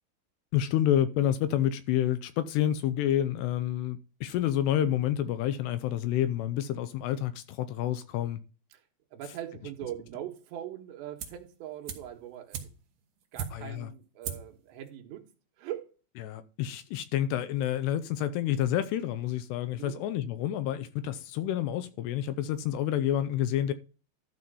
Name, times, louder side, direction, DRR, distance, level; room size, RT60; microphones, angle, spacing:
voice 1, 0.5-8.4 13.5-13.9 16.2-23.7, left 11 dB, 80° left, 2.6 m, -29 dB
voice 2, 9.1-12.7 13.3-15.3 15.6-15.9 19.8-20.0, right 11 dB, 75° right, 3.4 m, -41 dB
sound 1, 11.2-11.5 11.8-13.8 14.2-14.6 14.9-15.0, right 8 dB, 60° right, 2.6 m, -39 dB
12.5 x 4.4 x 5.4 m
omnidirectional pair, 5.1 m